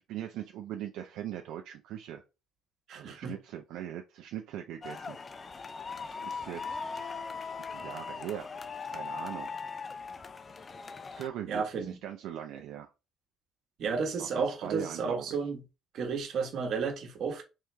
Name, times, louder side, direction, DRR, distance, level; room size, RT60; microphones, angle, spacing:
voice 1, 0.1-2.2 2.9-5.2 6.0-8.5 8.9-9.5 11.1-12.9 14.2-14.3 14.6-15.4, right 11 dB, 80° right, 0.5 m, -41 dB
voice 2, 2.9-3.3 11.5-12.0 13.8-15.6 15.9-17.4, right 5 dB, 55° right, 1.2 m, -32 dB
sound 1, 4.8-11.3, left 5 dB, 25° left, 0.4 m, -40 dB
3.6 x 3.1 x 3.3 m
cardioid pair, 130°, 0 cm